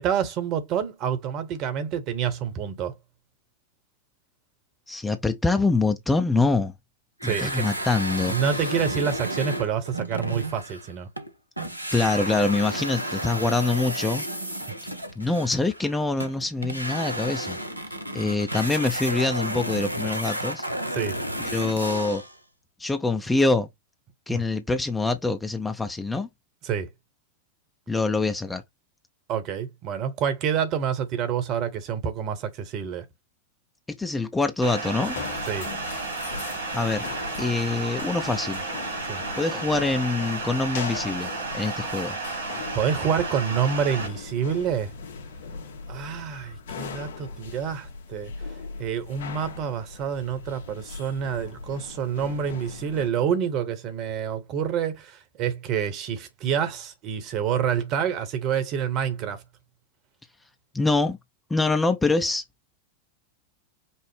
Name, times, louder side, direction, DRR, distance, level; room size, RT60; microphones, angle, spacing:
voice 1, 0.0-2.9 7.2-7.7 8.3-11.1 20.9-21.2 24.3-24.4 26.6-26.9 29.3-33.1 35.5-35.7 39.1-39.2 42.7-44.9 45.9-48.3 48.8-59.4, right 8 dB, 40° right, 1.0 m, -27 dB
voice 2, 4.9-6.7 7.2-8.4 11.9-14.2 15.2-17.6 18.1-20.7 21.4-22.2 22.8-23.7 24.3-26.3 27.9-28.6 33.9-35.2 36.7-37.1 37.4-38.6 39.4-42.2 60.7-61.2 61.5-62.4, left 3 dB, 10° left, 0.5 m, -25 dB
sound 1, 7.2-11.3 11.6-22.4, right 1 dB, 90° right, 0.6 m, -32 dB
sound 2, 34.6-44.1, right 3 dB, 70° right, 1.9 m, -32 dB
sound 3, 35.0-53.1, left 5 dB, 55° left, 1.2 m, -39 dB
5.4 x 2.0 x 3.3 m
figure-of-eight pair, 90°, 0 cm